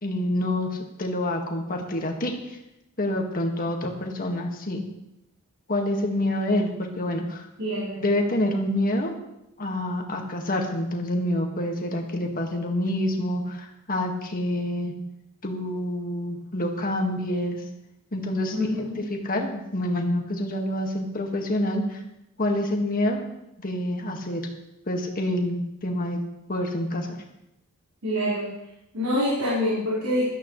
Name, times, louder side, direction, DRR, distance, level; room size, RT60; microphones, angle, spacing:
voice 1, 0.0-2.3 3.0-4.8 5.7-7.5 8.0-9.1 9.6-14.9 15.4-17.6 18.1-22.0 22.4-23.2 23.6-24.4 24.9-26.2 26.5-27.2, left 1 dB, 40° left, 2 dB, 1.8 m, -27 dB
voice 2, 7.6-8.0 18.5-19.0 28.0-28.5 28.9-30.3, left 1 dB, 75° right, -9 dB, 4.6 m, -26 dB
17.0 x 12.5 x 3.2 m, 0.87 s
head